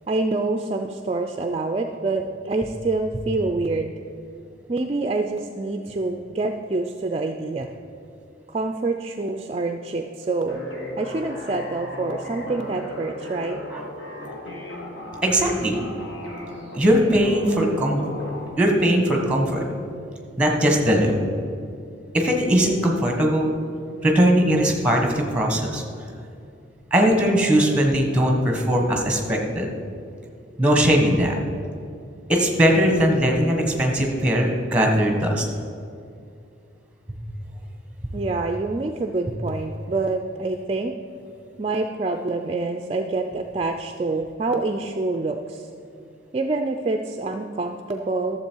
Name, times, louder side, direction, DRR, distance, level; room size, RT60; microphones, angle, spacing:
voice 1, 0.1-3.9 4.7-7.7 8.5-10.6 11.0-13.6 38.1-40.9 41.6-45.7 46.3-48.4, right 3 dB, 30° right, 5 dB, 0.3 m, -26 dB
sound 1, 10.5-18.5, left 1 dB, 70° left, 1.8 m, -35 dB
voice 2, 15.2-15.8 16.8-18.0 18.6-19.6 20.4-21.1 22.1-23.5 24.0-25.8 26.9-29.7 30.6-31.4 32.3-35.4 37.1-37.2 38.0-38.1, equal, 5° right, 1 dB, 1.3 m, -20 dB
12.5 x 7.2 x 4.6 m, 2.5 s
head